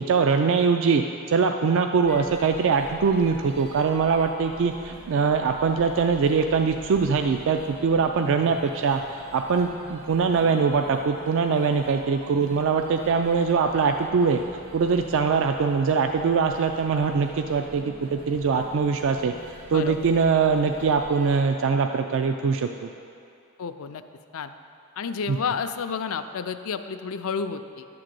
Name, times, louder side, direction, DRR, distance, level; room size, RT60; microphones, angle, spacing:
voice 1, 0.0-14.4 14.7-19.3 19.7-22.9 25.3-25.4, right 5 dB, 60° right, 5 dB, 0.3 m, -22 dB
sound 1, 2.0-21.4, equal, 80° right, 2.0 m, -45 dB
voice 2, 23.6-24.0 24.3-24.5 25.0-27.9, left 6 dB, 65° left, 9 dB, 0.4 m, -30 dB
11.0 x 3.8 x 7.6 m, 2.6 s
head